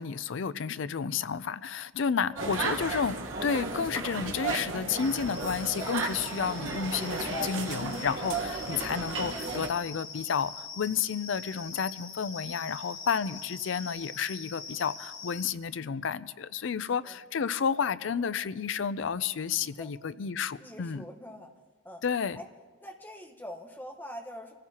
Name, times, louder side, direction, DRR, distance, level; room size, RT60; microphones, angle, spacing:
voice 1, 0.0-21.1 22.0-22.4, left 6 dB, 70° left, 0.4 m, -31 dB
voice 2, 2.2-2.6 17.0-17.1 19.5-19.9 20.6-21.5 21.8-22.0 22.4-22.5 22.8-24.5, equal, 10° left, 1.1 m, -44 dB
sound 1, 2.4-9.7, right 3 dB, 85° right, 1.4 m, -34 dB
sound 2, 5.0-15.4, left 5 dB, 45° left, 1.4 m, -44 dB
24.5 x 15.5 x 2.9 m
head